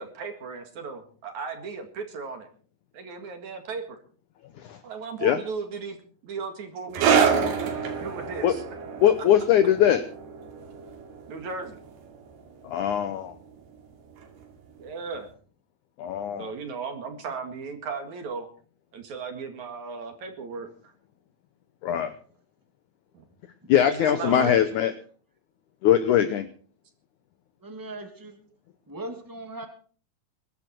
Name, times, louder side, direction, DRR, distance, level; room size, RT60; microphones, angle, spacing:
voice 1, 0.0-2.5 2.9-4.0 4.8-6.0 6.2-7.7 8.0-8.6 11.3-11.8 14.8-15.3 16.4-18.5 18.9-20.9 23.1-23.2 23.8-24.6, right 5 dB, 55° right, 6 dB, 3.0 m, -36 dB
sound 1, 6.9-13.9 14.2-14.4 15.2-15.3, right 6 dB, 90° right, 4.5 m, -28 dB
voice 2, 9.0-10.0 12.6-13.4 16.0-16.5 21.8-22.1 23.7-24.9 25.8-26.5, left 10 dB, 75° left, 10 dB, 1.8 m, -21 dB
voice 3, 24.3-24.9 27.6-28.4 28.9-29.7, right 2 dB, 10° right, 5 dB, 1.3 m, -38 dB
22.0 x 12.0 x 4.5 m, 0.43 s
omnidirectional pair, 4.5 m